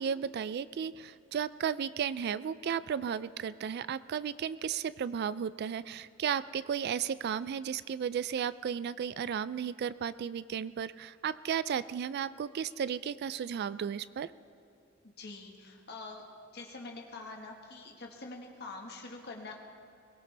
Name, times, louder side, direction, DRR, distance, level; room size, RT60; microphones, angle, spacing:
voice 1, 0.0-14.3, right 8 dB, 55° right, 16 dB, 0.3 m, -34 dB
voice 2, 15.0-16.2 16.5-19.6, left 3 dB, 55° left, 1 dB, 1.5 m, -45 dB
22.0 x 18.5 x 3.4 m, 2.4 s
head